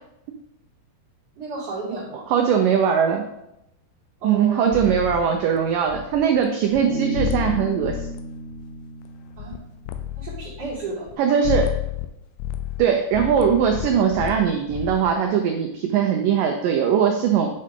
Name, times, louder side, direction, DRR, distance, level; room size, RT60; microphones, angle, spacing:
voice 1, 1.4-2.3 4.2-4.6 9.4-9.6 10.2-11.1, right 3 dB, 40° right, -10 dB, 3.1 m, -32 dB
voice 2, 2.3-3.2 4.2-8.1 11.2-11.7 12.8-17.5, right 7 dB, 90° right, 4 dB, 1.9 m, -20 dB
sound 1, 4.7-6.5 6.7-6.8 7.1-8.2 8.5-9.1 9.4-9.6 9.9-11.1 11.4-12.1 12.4-15.1, left 12 dB, 90° left, 2.8 m, -31 dB
Bass guitar, 6.9-10.4, left 1 dB, 40° left, 1.8 m, -34 dB
8.6 x 6.6 x 3.7 m, 0.83 s
omnidirectional pair, 4.8 m